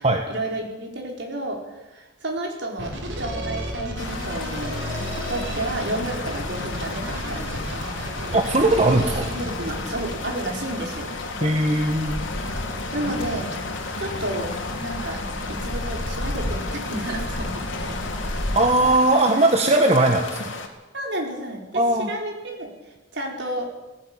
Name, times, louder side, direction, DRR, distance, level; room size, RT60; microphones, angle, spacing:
voice 1, 0.0-7.8 9.3-11.1 12.6-13.5 14.0-14.5 14.8-15.2 15.5-18.0 20.9-23.7, right 1 dB, 60° right, 1 dB, 4.8 m, -31 dB
sound 1, 2.8-10.1, equal, 80° right, 6.1 m, -32 dB
sound 2, 4.0-20.7, left 3 dB, 85° left, 3.0 m, -34 dB
sound 3, 5.0-19.0, left 1 dB, 65° left, 2.8 m, -33 dB
voice 2, 8.3-9.3 11.4-12.3 18.5-20.5 21.7-22.1, right 2 dB, 30° right, 3 dB, 1.5 m, -19 dB
18.0 x 16.0 x 8.9 m, 1.1 s
head